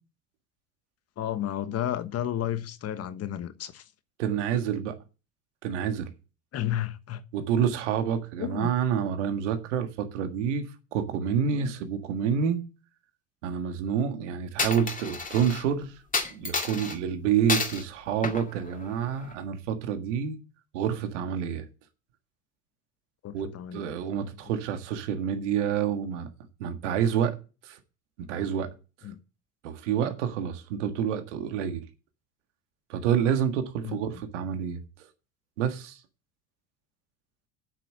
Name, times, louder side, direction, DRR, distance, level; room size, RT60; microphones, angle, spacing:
voice 1, 1.2-3.8 6.5-7.2 8.4-8.7 23.2-23.8 29.0-29.2 33.8-34.2, left 11 dB, 45° left, 1.1 m, -32 dB
voice 2, 4.2-5.0 5.6-6.1 7.3-10.7 10.9-12.6 13.4-15.9 16.3-20.4 20.7-21.7 23.3-26.3 26.6-27.4 27.6-27.8 28.3-28.7 29.6-31.8 32.9-34.8 35.6-36.0, right 8 dB, 90° right, 1.7 m, -28 dB
Coin (dropping), 14.6-15.6 16.1-17.0 17.5-17.8 18.2-19.3, left 4 dB, 25° left, 2.2 m, -30 dB
8.3 x 6.8 x 7.6 m
supercardioid pair, 90°, 35 cm